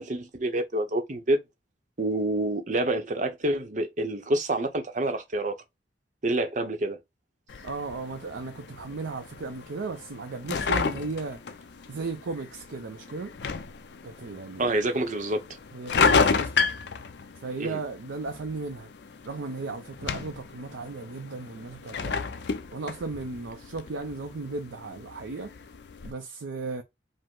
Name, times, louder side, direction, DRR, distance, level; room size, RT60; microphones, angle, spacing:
voice 1, 0.0-1.4 2.0-5.6 6.2-7.0 14.6-15.4 17.6-17.8, right 1 dB, 40° right, 0.7 m, -27 dB
sound 1, 7.5-26.1, left 5 dB, 65° left, 0.5 m, -32 dB
voice 2, 7.6-11.4 11.9-13.3 14.0-14.8 15.7-16.7 17.4-18.9 19.3-22.3 22.7-25.5 26.0-26.8, right 3 dB, 80° right, 0.6 m, -36 dB
5.1 x 2.1 x 3.6 m
head